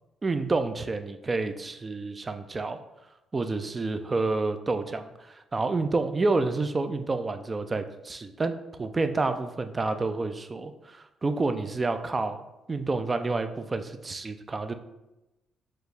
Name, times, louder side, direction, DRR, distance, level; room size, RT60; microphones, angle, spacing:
voice 1, 0.2-2.8 3.3-5.1 5.5-8.5 8.8-12.4 12.7-14.7, right 3 dB, 30° right, 9 dB, 0.3 m, -29 dB
4.5 x 2.5 x 3.3 m, 0.97 s
cardioid pair, 90°, 0 cm